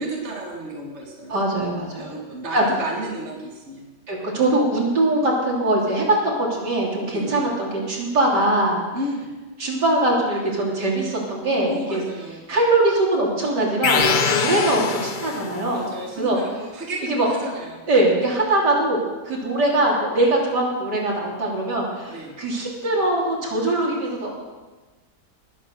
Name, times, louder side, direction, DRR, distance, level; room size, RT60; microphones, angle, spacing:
voice 1, 0.0-1.4 2.0-3.8 7.1-7.4 8.9-9.3 11.6-12.5 14.8-17.8 22.1-22.4, right 1 dB, 40° right, -1 dB, 2.3 m, -33 dB
voice 2, 1.3-2.2 2.5-2.7 4.1-8.8 9.6-12.0 12.5-15.9 16.2-16.4 17.1-17.3 17.9-24.4, right 1 dB, 75° right, -3 dB, 3.8 m, -22 dB
sound 1, 13.8-15.7, left 6 dB, 50° left, 0.5 m, -23 dB
20.0 x 8.9 x 6.5 m, 1.2 s
omnidirectional pair, 1.8 m